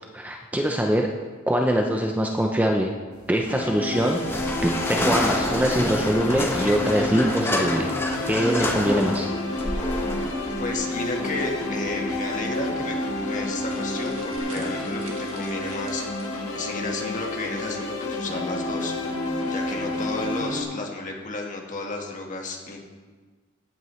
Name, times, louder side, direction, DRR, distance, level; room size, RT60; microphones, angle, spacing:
voice 1, 0.1-1.1 1.5-2.9 3.3-4.2 4.6-7.9 8.3-9.3, equal, 5° right, 2 dB, 0.5 m, -23 dB
sound 1, 3.5-20.6, left 1 dB, 85° left, 1.7 m, -30 dB
sound 2, 3.9-14.4, left 1 dB, 10° left, 1.0 m, -30 dB
voice 2, 10.6-22.8, left 2 dB, 35° left, 1 dB, 1.5 m, -33 dB
sound 3, 12.6-16.6, right 3 dB, 70° right, 2.1 m, -47 dB
15.0 x 8.6 x 3.1 m, 1.4 s
head